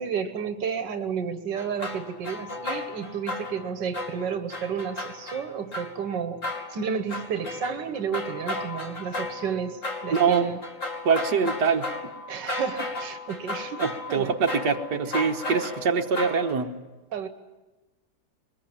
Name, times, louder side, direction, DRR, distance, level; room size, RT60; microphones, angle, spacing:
voice 1, 0.0-10.6 12.3-14.3 15.1-15.3 17.1-17.3, right 7 dB, 85° right, 9 dB, 1.8 m, -32 dB
sound 1, 1.6-3.7 3.9-6.2 6.4-16.5, left 2 dB, 45° left, 3.1 m, -35 dB
voice 2, 10.1-10.5 11.1-11.9 13.8-16.7, right 5 dB, 70° right, 2 dB, 1.9 m, -24 dB
22.5 x 20.5 x 8.9 m, 1.2 s
omnidirectional pair, 1.9 m